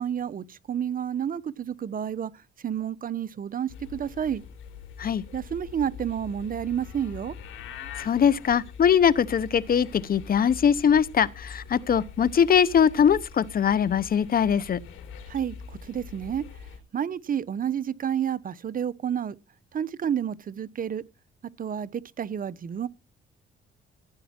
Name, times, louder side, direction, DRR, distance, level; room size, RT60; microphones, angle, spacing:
voice 1, 0.0-2.3 2.6-4.4 5.3-7.3 15.3-15.5 15.9-16.4 16.9-19.3 19.7-21.0 21.6-22.9, right 9 dB, 45° right, 0.9 m, -30 dB
sound 1, 3.7-16.8, left 6 dB, 85° left, 4.0 m, -43 dB
voice 2, 8.0-14.8, left 8 dB, 45° left, 0.9 m, -22 dB
16.5 x 9.2 x 4.4 m
cardioid pair, 90°, 20 cm